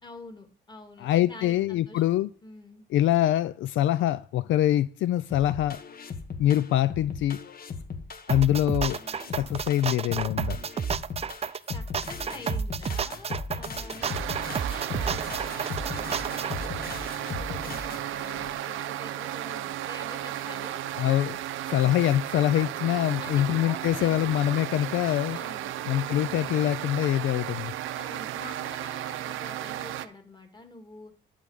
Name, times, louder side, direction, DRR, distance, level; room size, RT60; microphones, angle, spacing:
voice 1, 0.0-2.8 11.7-16.7 17.3-20.8 23.2-24.2 25.3-25.8 27.9-31.1, left 2 dB, 20° left, 2.5 m, -46 dB
voice 2, 1.0-2.3 2.9-5.8 6.4-7.4 8.3-9.0 9.3-10.6 21.0-21.4 21.7-25.4 25.9-27.7, left 13 dB, 75° left, 0.4 m, -24 dB
sound 1, 5.3-18.5, left 4 dB, 50° left, 1.4 m, -38 dB
sound 2, 8.3-16.6, right 7 dB, 30° right, 0.4 m, -31 dB
sound 3, 14.0-30.1, right 12 dB, 85° right, 0.7 m, -34 dB
11.5 x 3.9 x 7.4 m
cardioid pair, 90°, 20 cm